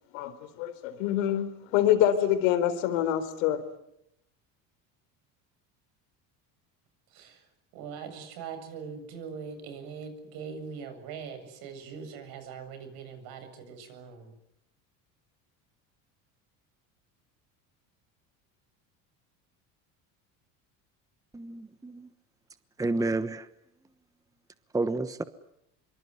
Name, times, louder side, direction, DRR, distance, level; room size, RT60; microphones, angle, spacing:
voice 1, 0.1-3.6, left 11 dB, 85° left, 11 dB, 4.0 m, -26 dB
voice 2, 7.7-14.3, right 6 dB, 70° right, 10 dB, 7.7 m, -41 dB
voice 3, 21.3-22.0 22.8-23.4 24.7-25.2, right 2 dB, 10° right, 12 dB, 1.1 m, -30 dB
25.5 x 24.0 x 9.7 m, 0.78 s
cardioid pair, 120°, 38 cm